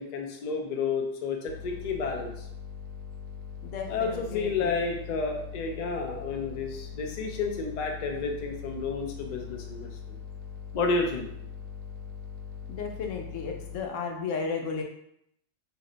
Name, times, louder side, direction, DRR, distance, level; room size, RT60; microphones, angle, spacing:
voice 1, 0.0-2.5 3.9-10.2 10.7-11.3, left 4 dB, 60° left, 2 dB, 0.4 m, -31 dB
sound 1, 1.5-13.8, left 6 dB, 75° right, 0.9 m, -41 dB
voice 2, 3.6-4.7 12.7-14.8, left 5 dB, 90° left, 2 dB, 0.9 m, -34 dB
2.6 x 2.1 x 3.7 m, 0.73 s
omnidirectional pair, 1.3 m